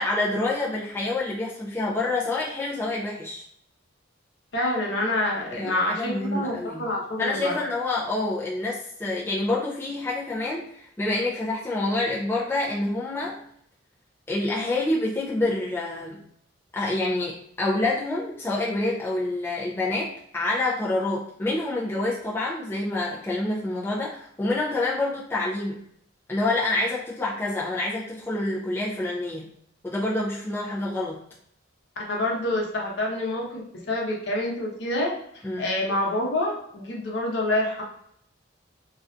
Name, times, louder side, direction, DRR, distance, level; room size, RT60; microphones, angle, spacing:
voice 1, 0.0-3.4 5.5-6.9 7.2-13.4 14.3-16.2 16.7-25.8 26.3-29.5 29.8-31.2 35.4-35.7, left 2 dB, 10° left, -6 dB, 0.3 m, -27 dB
voice 2, 4.5-7.6 32.1-35.1 35.6-37.8, left 1 dB, 65° left, -2 dB, 0.7 m, -27 dB
2.4 x 2.2 x 2.5 m, 0.70 s
head